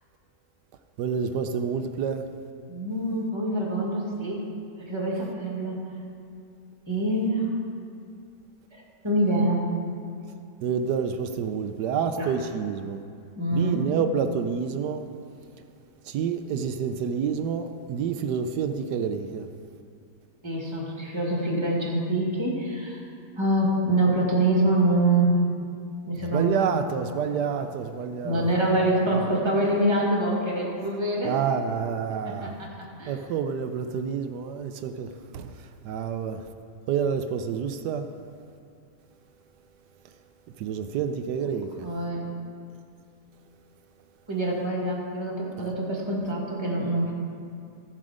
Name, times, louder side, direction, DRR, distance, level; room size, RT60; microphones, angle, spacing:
voice 1, 1.0-2.3 10.6-13.0 13.5-15.1 16.0-19.5 26.2-28.7 29.1-29.3 31.2-32.5 33.1-36.5 36.9-38.1 40.0-40.1 40.6-41.9 45.6-45.7, right 7 dB, 85° right, 1.2 m, -28 dB
voice 2, 2.7-4.5 4.8-5.9 6.9-7.5 8.7-9.6 12.2-12.3 13.4-13.9 20.4-23.0 23.4-25.4 26.0-26.5 28.2-31.4 32.2-33.1 41.8-42.3 44.3-47.1, right 1 dB, 15° right, 2.0 m, -25 dB
15.5 x 7.5 x 5.0 m
omnidirectional pair, 1.7 m